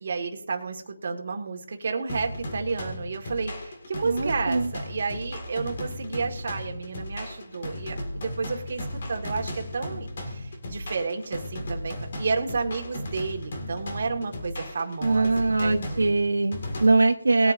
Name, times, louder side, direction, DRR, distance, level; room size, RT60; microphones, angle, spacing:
voice 1, 0.0-16.1 17.4-17.5, right 4 dB, 40° right, 3 dB, 1.8 m, -31 dB
sound 1, 2.1-16.9, left 1 dB, 40° left, 2.2 m, -36 dB
voice 2, 4.0-4.7 15.0-17.5, right 3 dB, 75° right, 4 dB, 1.0 m, -22 dB
20.5 x 8.9 x 2.7 m, 0.70 s
figure-of-eight pair, 170°, 0 cm